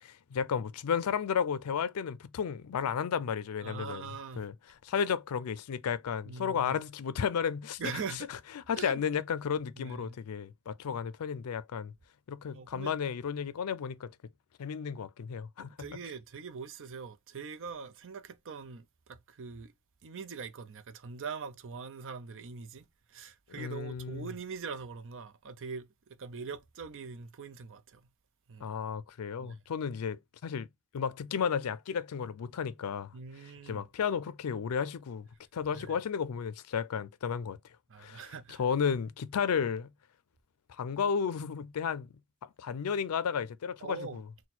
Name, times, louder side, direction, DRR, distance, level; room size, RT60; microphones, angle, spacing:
voice 1, 0.0-4.1 4.4-4.5 4.8-7.8 8.7-11.9 12.3-14.1 14.6-15.7 23.5-24.3 28.6-30.7 30.9-33.1 33.7-35.3 35.5-37.6 38.0-38.2 38.6-39.9 40.7-42.1 42.6-44.2, left 7 dB, 80° left, 0.4 m, -33 dB
voice 2, 3.6-4.5 6.2-6.8 7.8-8.3 8.8-9.0 9.8-10.2 12.5-12.9 15.6-19.7 20.0-28.1 28.5-28.8 29.4-29.6 33.1-33.9 35.7-36.0 37.9-38.6 43.8-44.2, right 5 dB, 60° right, 0.5 m, -42 dB
4.2 x 2.2 x 4.2 m
head